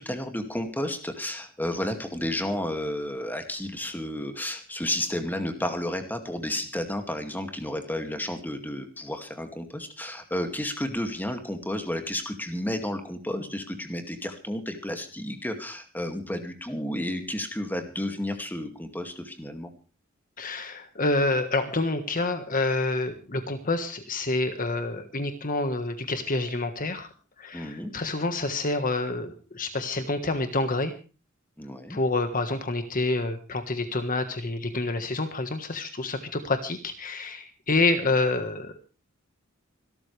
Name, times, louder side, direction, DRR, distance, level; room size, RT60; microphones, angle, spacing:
voice 1, 0.0-19.7 27.5-27.9 31.6-32.0, left 1 dB, 10° left, 6 dB, 2.3 m, -32 dB
voice 2, 20.4-27.1 27.4-30.9 31.9-38.8, left 2 dB, 40° left, 8 dB, 1.5 m, -28 dB
25.5 x 13.0 x 3.4 m, 0.34 s
head